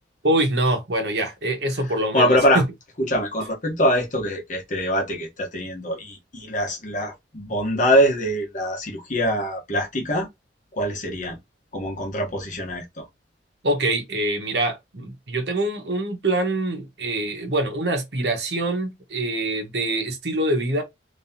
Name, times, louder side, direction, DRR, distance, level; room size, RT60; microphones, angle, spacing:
voice 1, 0.2-2.6 13.6-20.8, right 1 dB, 70° right, 1.2 m, -24 dB
voice 2, 2.1-2.6 3.0-10.3 10.8-11.4 11.7-13.0, equal, 45° left, 1.2 m, -23 dB
3.6 x 3.2 x 2.8 m
head